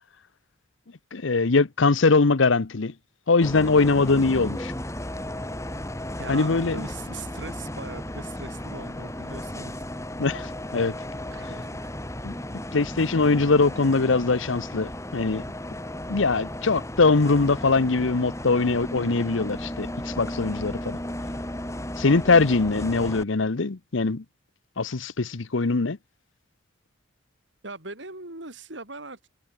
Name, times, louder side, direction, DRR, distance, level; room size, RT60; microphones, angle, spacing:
voice 1, 1.1-2.9 3.3-4.7 6.3-6.9 10.2-11.0 12.2-15.4 16.1-21.0 22.0-24.2 24.8-26.0, left 3 dB, 80° left, 0.9 m, -22 dB
Bus, 3.4-23.2, left 1 dB, 15° left, 3.7 m, -35 dB
voice 2, 6.2-9.8 11.3-11.9 12.5-12.8 13.3-13.7 27.6-29.3, right 3 dB, 65° right, 5.2 m, -41 dB
head